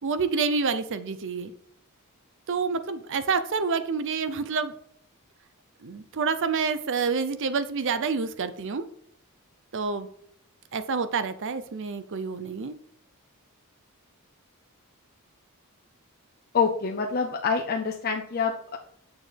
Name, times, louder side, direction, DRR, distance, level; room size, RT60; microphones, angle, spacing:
voice 1, 0.0-1.5 2.5-4.7 5.8-8.9 9.7-10.1 10.7-12.7, right 5 dB, 60° right, 12 dB, 0.6 m, -28 dB
voice 2, 16.5-18.8, left 5 dB, 45° left, 1 dB, 0.5 m, -26 dB
7.0 x 6.5 x 3.4 m, 0.68 s
head